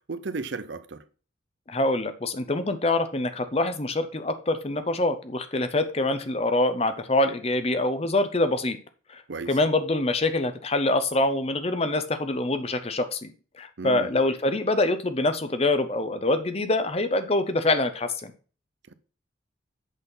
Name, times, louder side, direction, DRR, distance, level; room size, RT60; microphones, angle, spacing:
voice 1, 0.1-1.0 9.3-9.6 13.8-14.2 18.9-19.0, right 4 dB, 60° right, 0.6 m, -34 dB
voice 2, 1.7-8.8 9.1-18.3, left 2 dB, 30° left, 0.7 m, -25 dB
8.1 x 4.1 x 5.5 m
head